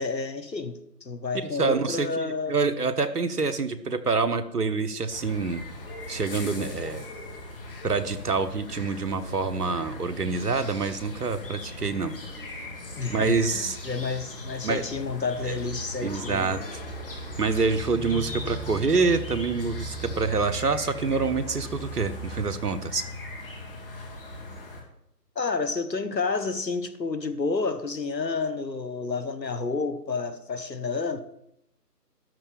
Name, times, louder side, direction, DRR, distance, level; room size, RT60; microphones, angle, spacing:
voice 1, 0.0-2.6 13.0-16.5 25.3-31.2, left 4 dB, 85° left, 1.3 m, -30 dB
voice 2, 1.6-5.6 6.1-7.1 7.8-12.2 13.1-13.8 14.6-14.8 15.4-15.6 16.0-16.8 17.4-23.0, right 4 dB, 65° right, 1.2 m, -26 dB
sound 1, 5.1-24.8, equal, 35° left, 2.3 m, -39 dB
sound 2, 17.9-23.4, left 1 dB, ahead, 1.0 m, -46 dB
12.5 x 4.4 x 8.5 m
figure-of-eight pair, 155°, 49 cm